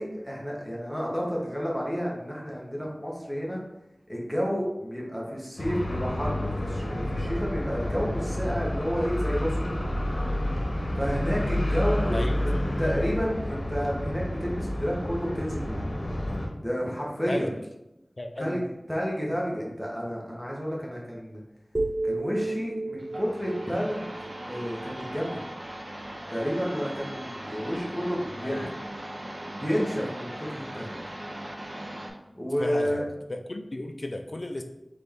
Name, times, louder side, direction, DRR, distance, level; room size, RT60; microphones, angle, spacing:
voice 1, 0.0-3.6 4.1-9.7 11.0-12.4 12.8-15.8 16.6-17.5 18.4-21.4 22.0-24.2 24.5-25.4 26.3-28.7 29.6-31.0 32.3-33.0, equal, 5° left, -3 dB, 1.2 m, -30 dB
sound 1, 5.6-16.5, left 1 dB, 80° left, 0.9 m, -29 dB
voice 2, 12.1-12.7 17.3-17.5 18.2-18.6 27.6-28.0 28.3-28.6 32.6-33.0 33.3-34.6, left 1 dB, 60° left, 5 dB, 0.4 m, -34 dB
sound 2, 21.7-25.8, right 2 dB, 30° right, 0.5 m, -34 dB
sound 3, 23.0-32.1, right 1 dB, 65° right, 0.7 m, -39 dB
4.0 x 3.3 x 3.6 m, 0.90 s
wide cardioid pair, 45°, 0 cm